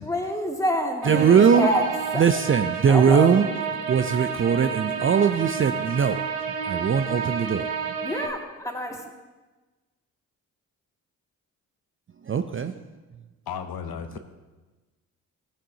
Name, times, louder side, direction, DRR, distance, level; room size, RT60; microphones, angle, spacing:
voice 1, 0.0-1.8 2.1-2.3 2.9-3.4 8.0-9.0, equal, 10° left, 2.1 m, -27 dB
sound 1, 1.0-8.3, right 6 dB, 90° right, 0.9 m, -30 dB
voice 2, 1.1-1.7 2.2-3.5 3.9-6.2 6.7-8.0 12.2-12.8, right 7 dB, 30° right, 0.5 m, -20 dB
voice 3, 13.5-14.2, left 7 dB, 60° left, 0.9 m, -34 dB
15.0 x 8.7 x 2.8 m
hypercardioid pair, 45°, 40 cm